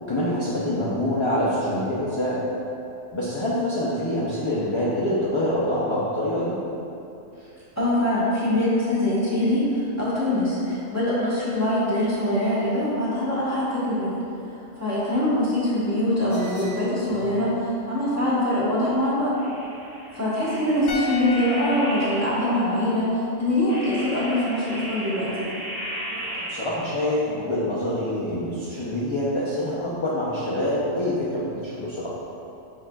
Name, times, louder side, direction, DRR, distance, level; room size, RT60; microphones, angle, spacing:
voice 1, 0.0-2.4 3.1-6.6 8.0-8.1 26.1-32.1, left 1 dB, 45° left, -9 dB, 0.3 m, -26 dB
voice 2, 7.8-14.1 14.5-19.4 20.1-25.5, left 1 dB, 15° right, -10 dB, 1.0 m, -23 dB
sound 1, 16.3-17.6 19.3-22.7 23.7-27.1, right 1 dB, 60° right, 1.4 m, -36 dB
sound 2, 20.9-24.1 24.3-24.5, left 6 dB, 80° left, 1.0 m, -36 dB
5.9 x 3.9 x 2.3 m, 2.8 s
omnidirectional pair, 1.4 m